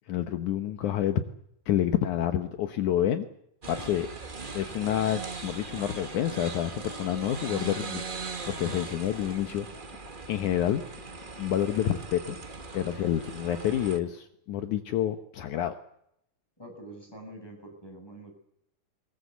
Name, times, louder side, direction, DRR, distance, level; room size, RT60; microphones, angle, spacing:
voice 1, 0.1-1.2 1.7-3.3 3.7-4.1 4.5-9.7 10.3-10.8 11.4-12.4 12.7-15.8, left 11 dB, 70° left, 9 dB, 2.5 m, -28 dB
sound 1, 3.6-14.0, right 4 dB, 65° right, 0.5 m, -40 dB
voice 2, 16.6-18.3, right 1 dB, 5° left, 3 dB, 7.2 m, -45 dB
23.0 x 20.0 x 8.2 m, 0.76 s
omnidirectional pair, 3.8 m